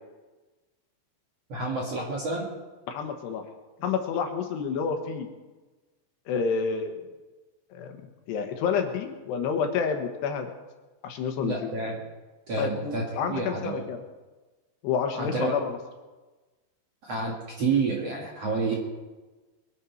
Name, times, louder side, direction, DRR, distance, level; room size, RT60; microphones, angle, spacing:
voice 1, 1.5-2.5 11.4-12.0 12.5-13.8 15.2-15.6 17.0-18.7, right 4 dB, 50° right, -2 dB, 2.1 m, -29 dB
voice 2, 2.9-3.4 3.8-5.3 6.3-7.0 7.7-8.0 8.3-10.5 11.0-11.7 12.6-14.0 14.8-15.8, left 6 dB, 75° left, 5 dB, 3.2 m, -29 dB
23.0 x 11.0 x 4.5 m, 1.2 s
omnidirectional pair, 5.2 m